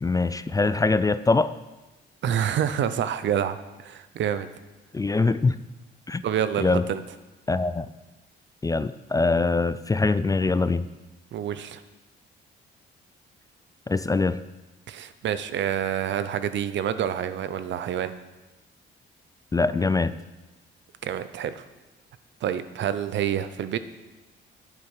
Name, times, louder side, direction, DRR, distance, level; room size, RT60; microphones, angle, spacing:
voice 1, 0.0-1.5 4.9-5.6 6.1-6.2 6.6-6.8 7.5-7.9 8.6-10.9 13.9-14.4 19.5-20.2, left 3 dB, 20° left, 14 dB, 0.4 m, -23 dB
voice 2, 2.2-4.5 6.2-7.0 11.3-11.8 14.9-18.1 21.0-21.6 22.4-23.8, right 9 dB, 65° right, 12 dB, 0.8 m, -27 dB
10.5 x 8.6 x 5.0 m, 1.1 s
cardioid pair, 90°, 20 cm